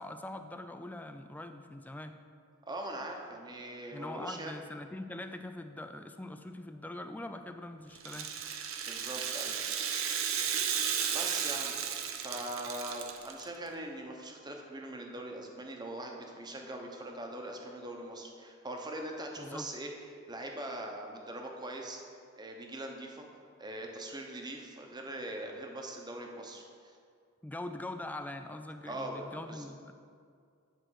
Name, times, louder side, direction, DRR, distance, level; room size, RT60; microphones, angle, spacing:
voice 1, 0.0-2.2 3.9-8.3 19.4-19.7 27.4-29.9, left 1 dB, 10° left, 8 dB, 0.3 m, -42 dB
voice 2, 2.7-4.6 8.8-9.6 11.1-19.9 20.3-23.2 23.6-27.0 28.8-29.6, right 1 dB, 20° right, 1 dB, 0.9 m, -42 dB
Rattle (instrument), 8.0-13.4, right 8 dB, 70° right, 0.7 m, -34 dB
10.0 x 4.5 x 6.4 m, 2.2 s
head